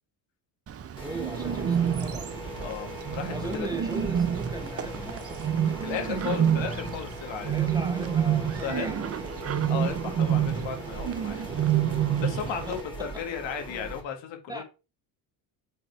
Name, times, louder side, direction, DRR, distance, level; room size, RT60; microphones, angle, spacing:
Bird, 0.7-12.8, right 9 dB, 30° right, 0.6 m, -28 dB
sound 1, 1.0-14.0, equal, 10° left, 2.7 m, -40 dB
voice 1, 1.0-2.3 3.3-6.6 7.5-9.5 9.8-10.2 12.4-13.2 14.5-14.6, right 2 dB, 10° right, 1.1 m, -39 dB
voice 2, 2.6-3.7 5.8-7.5 8.6-8.9 9.7-11.4 12.2-14.6, left 7 dB, 65° left, 2.0 m, -35 dB
5.2 x 4.1 x 4.6 m
supercardioid pair, 75°, 49 cm